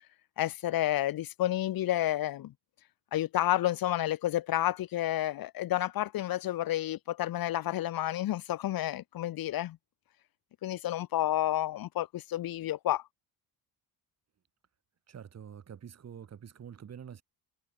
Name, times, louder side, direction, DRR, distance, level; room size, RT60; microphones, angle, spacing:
voice 1, 0.4-2.5 3.1-9.8 10.6-13.0, left 13 dB, 60° left, 1.7 m, -30 dB
voice 2, 15.1-17.2, right 8 dB, 40° right, 7.7 m, -46 dB
cardioid pair, 145°, 40 cm